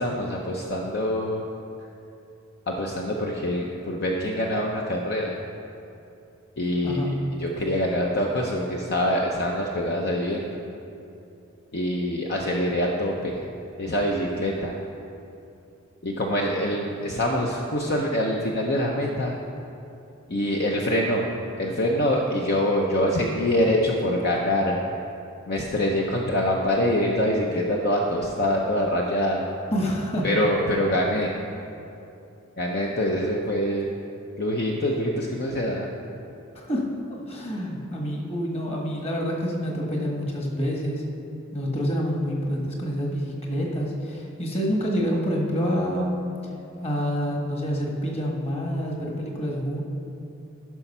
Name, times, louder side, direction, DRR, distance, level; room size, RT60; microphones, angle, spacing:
voice 1, 0.0-1.4 2.7-5.4 6.6-10.6 11.7-13.4 13.8-14.8 16.0-19.3 20.3-21.3 21.6-24.8 25.5-29.4 30.2-31.3 32.6-33.9 34.4-35.9, left 1 dB, 50° left, -1 dB, 0.8 m, -25 dB
voice 2, 29.7-30.2 36.5-36.8 37.1-41.0 41.5-46.2 46.8-49.8, equal, 30° left, -1 dB, 1.6 m, -27 dB
14.5 x 5.9 x 5.5 m, 2.7 s
head